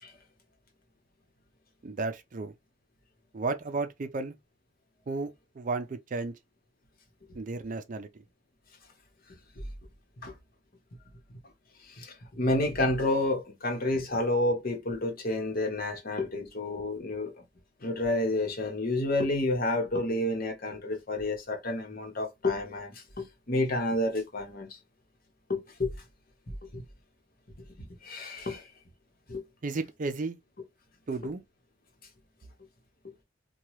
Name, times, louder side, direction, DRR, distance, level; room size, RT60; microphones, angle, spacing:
voice 1, 1.8-2.5 3.3-4.3 5.1-6.4 7.3-8.1 29.6-30.4 31.1-31.4, right 3 dB, 45° right, 0.5 m, -33 dB
voice 2, 11.8-17.3 17.8-24.8 25.5-25.9 26.7-26.8 27.8-28.7 29.3-29.4, left 2 dB, 55° left, 1.0 m, -30 dB
2.9 x 2.3 x 3.0 m
head